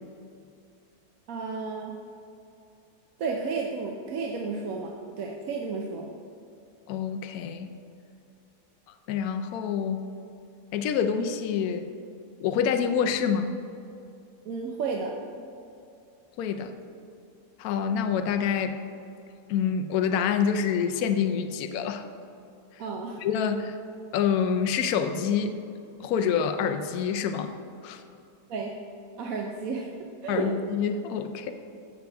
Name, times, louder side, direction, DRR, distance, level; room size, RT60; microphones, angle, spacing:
voice 1, 1.3-2.0 3.2-4.9 5.2-6.1 14.5-15.1 22.8-23.2 28.5-28.8 29.2-29.9 30.2-30.5, right 4 dB, 65° right, 0 dB, 1.1 m, -32 dB
voice 2, 6.9-7.7 9.1-10.0 10.7-11.9 12.4-13.6 16.4-16.7 17.6-18.8 19.5-22.0 22.7-22.8 23.2-23.8 24.1-25.6 26.0-27.5 27.8-28.0 30.3-31.5, left 7 dB, 70° left, 7 dB, 1.0 m, -27 dB
15.0 x 6.3 x 3.4 m, 2.6 s
omnidirectional pair, 1.7 m